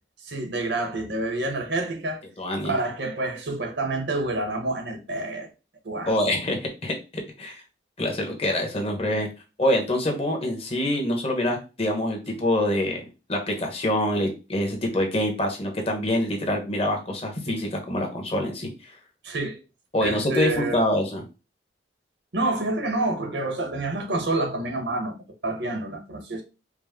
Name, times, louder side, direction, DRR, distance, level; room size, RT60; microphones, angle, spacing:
voice 1, 0.2-2.2 2.6-5.5 5.8-6.2 19.2-19.6 20.0-20.8 22.3-25.2 25.4-26.4, right 2 dB, 75° right, 1.0 m, -28 dB
voice 2, 2.4-2.7 6.1-7.6 8.0-9.3 9.6-18.9 19.9-21.2, left 1 dB, 35° left, 1.1 m, -25 dB
4.9 x 2.1 x 3.6 m
head